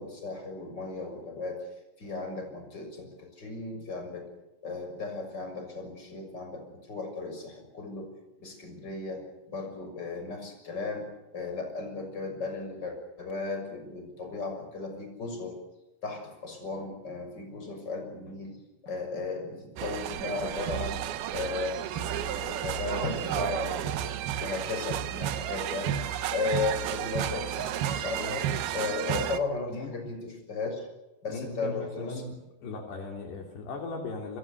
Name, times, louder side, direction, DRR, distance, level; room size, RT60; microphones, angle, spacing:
voice 1, 0.0-1.6 2.0-4.3 4.6-8.1 8.4-15.6 16.0-18.6 18.8-21.1 21.3-24.1 24.4-26.0 26.3-28.5 28.7-30.9 31.2-32.2, left 3 dB, 20° left, 4 dB, 6.6 m, -35 dB
sound 1, 19.8-29.4, right 10 dB, 70° right, 2.6 m, -32 dB
voice 2, 31.3-32.3 32.6-34.4, left 3 dB, 65° left, 2 dB, 5.1 m, -37 dB
29.5 x 23.0 x 6.9 m, 1.0 s
omnidirectional pair, 5.3 m